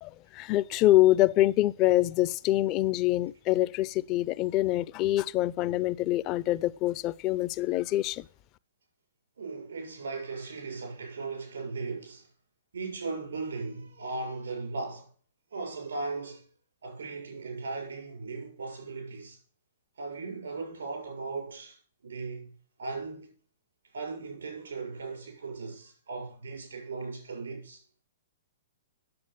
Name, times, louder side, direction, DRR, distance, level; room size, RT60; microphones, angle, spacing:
voice 1, 0.0-8.3, left 16 dB, 35° left, 0.6 m, -25 dB
voice 2, 9.4-12.3 12.7-15.1 15.5-16.4 16.8-19.4 20.0-22.5 22.8-23.4 23.9-27.8, right 3 dB, 85° right, 6.9 m, -37 dB
9.7 x 7.5 x 8.6 m
hypercardioid pair, 125°, 0 cm